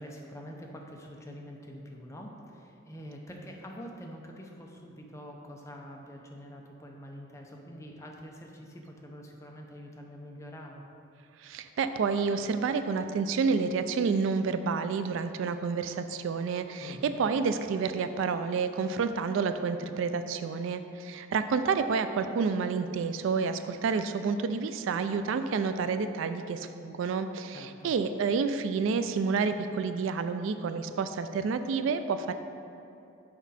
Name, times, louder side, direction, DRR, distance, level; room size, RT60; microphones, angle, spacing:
voice 1, 0.0-10.8 16.8-17.2 27.5-27.9, equal, 15° left, 0 dB, 0.5 m, -45 dB
voice 2, 11.4-32.3, right 5 dB, 70° right, 9 dB, 0.3 m, -29 dB
6.1 x 5.1 x 4.1 m, 2.7 s
head